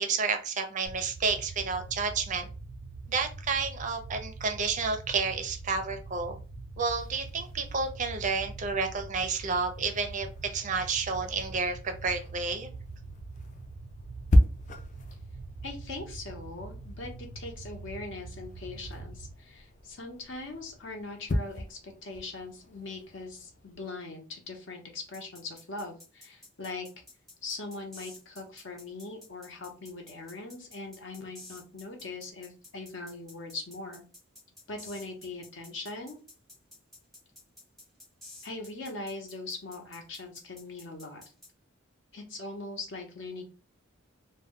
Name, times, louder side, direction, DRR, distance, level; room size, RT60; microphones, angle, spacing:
voice 1, 0.0-2.5 3.1-6.4 6.8-12.7, right 4 dB, 35° right, 6 dB, 0.4 m, -30 dB
sound 1, 0.9-19.3, right 3 dB, 90° right, 0.5 m, -44 dB
sound 2, 7.0-23.8, equal, 35° left, 0.3 m, -35 dB
voice 2, 15.6-26.9 27.4-34.0 34.7-36.2 38.4-41.2 42.1-43.4, left 3 dB, 60° left, 3 dB, 0.7 m, -41 dB
sound 3, 25.1-41.5, left 2 dB, ahead, 0.7 m, -51 dB
2.2 x 2.1 x 3.5 m, 0.34 s
head